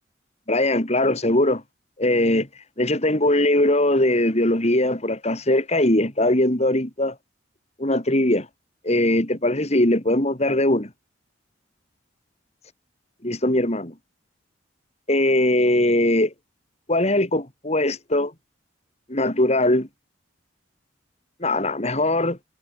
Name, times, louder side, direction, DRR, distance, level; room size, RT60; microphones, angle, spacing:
voice 1, 0.5-1.6 2.0-2.5 2.8-7.1 7.8-8.5 8.8-10.9 13.2-13.9 15.1-16.3 16.9-18.3 19.1-19.9 21.4-22.4, left 1 dB, 35° left, 3.0 m, -20 dB
head